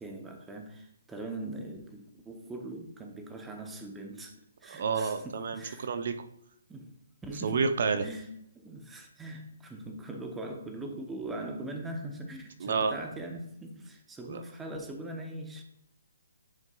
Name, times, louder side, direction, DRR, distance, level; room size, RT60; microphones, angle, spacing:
voice 1, 0.0-4.3 4.6-5.9 6.7-6.9 7.2-8.3 8.5-15.6, right 1 dB, 10° right, 3 dB, 0.7 m, -41 dB
voice 2, 4.7-6.3 7.3-8.0 12.6-12.9 14.2-14.4, right 5 dB, 55° right, 9 dB, 0.5 m, -30 dB
9.6 x 4.4 x 2.3 m, 0.73 s
hypercardioid pair, 150°, 0 cm